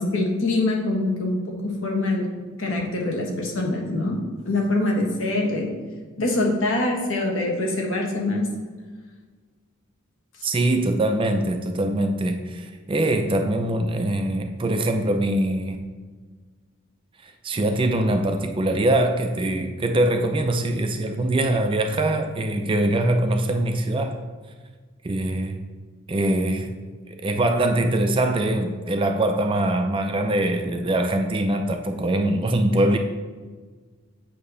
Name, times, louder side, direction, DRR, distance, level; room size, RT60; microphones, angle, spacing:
voice 1, 0.0-1.4 1.6-2.3 2.6-4.2 4.4-5.7 6.2-8.4, left 2 dB, 65° left, 0 dB, 1.3 m, -24 dB
voice 2, 10.4-15.8 17.2-24.2 25.0-25.6 26.1-26.7 27.1-33.0, right 1 dB, 25° right, 5 dB, 0.4 m, -23 dB
8.4 x 2.8 x 5.4 m, 1.5 s
head